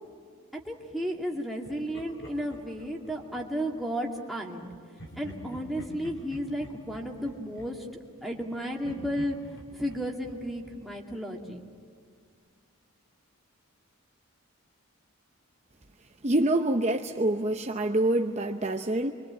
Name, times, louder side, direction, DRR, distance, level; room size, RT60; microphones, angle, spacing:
voice 1, 0.7-4.7 5.2-7.9 8.2-9.4 9.7-11.6, equal, ahead, -2 dB, 2.3 m, -33 dB
Laughter, 1.6-3.8 5.0-8.5 8.8-11.6, equal, 55° left, 5.7 m, -47 dB
voice 2, 16.2-19.1, right 1 dB, 30° right, 4 dB, 0.8 m, -26 dB
27.0 x 24.0 x 8.7 m, 2.1 s
head